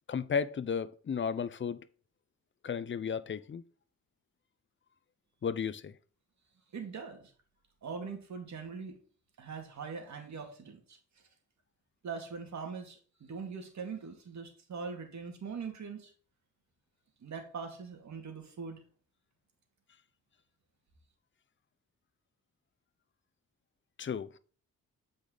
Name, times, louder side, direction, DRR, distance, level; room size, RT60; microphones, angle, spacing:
voice 1, 0.1-1.8 2.6-3.6 5.4-5.9 24.0-24.3, left 6 dB, 35° left, 0.7 m, -33 dB
voice 2, 6.7-7.3 7.8-9.0 9.4-11.0 12.0-16.1 17.2-18.8, right 5 dB, 60° right, 2.4 m, -42 dB
8.2 x 5.2 x 4.0 m
cardioid pair, 80°, 32 cm